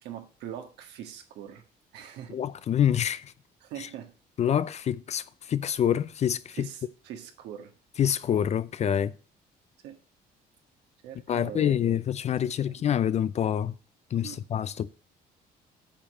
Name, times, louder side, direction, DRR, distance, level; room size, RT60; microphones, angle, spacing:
voice 1, 0.0-1.6 1.9-2.4 3.6-4.1 6.5-7.7 9.8-10.0 11.0-12.0 12.3-12.8 14.2-14.4, right 10 dB, 85° right, 1.8 m, -42 dB
voice 2, 2.3-3.3 3.8-3.9 4.4-6.7 8.0-9.1 11.3-13.7 14.1-14.9, left 9 dB, 40° left, 0.5 m, -26 dB
8.8 x 5.2 x 7.5 m
cardioid pair, 110°, 17 cm